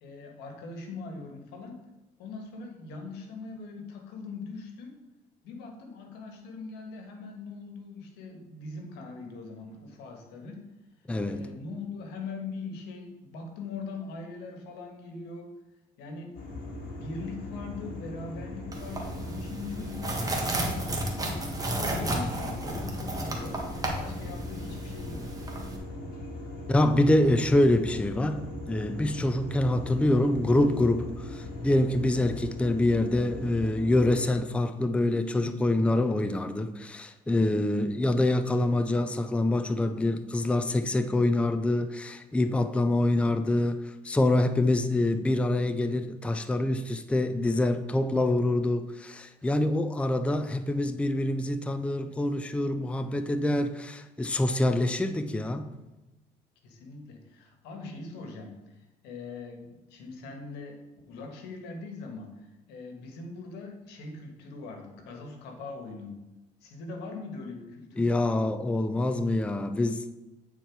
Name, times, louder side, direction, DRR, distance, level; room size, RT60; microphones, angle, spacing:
voice 1, 0.0-1.8 2.2-5.0 5.4-10.6 11.0-15.5 16.0-16.3 16.9-21.4 21.8-23.6 24.0-25.3 56.6-60.8 61.1-66.2 66.6-68.1, left 3 dB, 90° left, 1.5 m, -41 dB
voice 2, 11.1-11.5 26.7-55.8 68.0-70.1, left 1 dB, 5° left, 0.4 m, -26 dB
sound 1, 16.3-34.2, left 1 dB, 55° left, 1.9 m, -39 dB
sound 2, 18.7-25.8, right 1 dB, 20° right, 1.5 m, -33 dB
8.8 x 4.4 x 4.6 m
cardioid pair, 110°, 17 cm